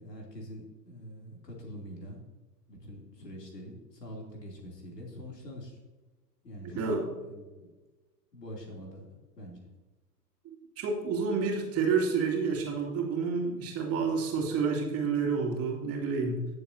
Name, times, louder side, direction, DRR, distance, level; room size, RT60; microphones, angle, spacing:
voice 1, 0.0-2.2 2.7-5.8 6.4-7.7 8.3-9.0 9.3-9.7, equal, 75° left, -1 dB, 3.3 m, -44 dB
voice 2, 6.6-7.1 10.4-16.5, right 5 dB, 30° right, -1 dB, 2.6 m, -29 dB
18.0 x 7.1 x 2.8 m, 1.2 s
figure-of-eight pair, 100°, 48 cm